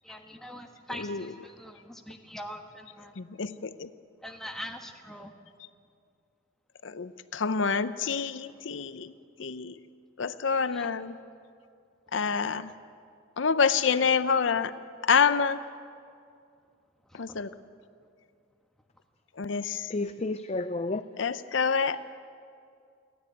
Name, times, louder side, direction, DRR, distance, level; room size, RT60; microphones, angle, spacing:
voice 1, 0.0-3.1 4.2-5.3 10.7-10.9 17.1-17.4, equal, ahead, 3 dB, 1.3 m, -42 dB
voice 2, 3.2-3.9 6.8-9.1 9.4-9.7 10.2-11.1 12.1-12.7 13.4-14.7 15.0-15.6 17.1-17.5 19.4-19.9 21.2-22.0, left 5 dB, 75° left, 13 dB, 0.6 m, -27 dB
voice 3, 19.9-21.0, left 2 dB, 35° left, 10 dB, 0.5 m, -31 dB
29.0 x 10.0 x 9.3 m, 2.4 s
head